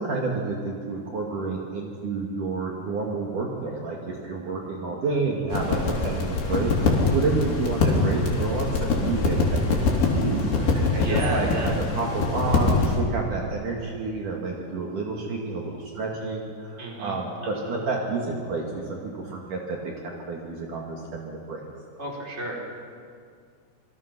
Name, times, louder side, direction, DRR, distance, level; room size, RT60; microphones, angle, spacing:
voice 1, 0.0-21.6, right 3 dB, 55° right, -1 dB, 3.4 m, -30 dB
sound 1, 5.5-13.0, left 3 dB, 75° left, 5.4 m, -24 dB
voice 2, 11.0-11.7 16.8-18.0 22.0-22.5, right 2 dB, 15° right, -1 dB, 4.0 m, -32 dB
27.5 x 24.5 x 6.0 m, 2.3 s
omnidirectional pair, 4.7 m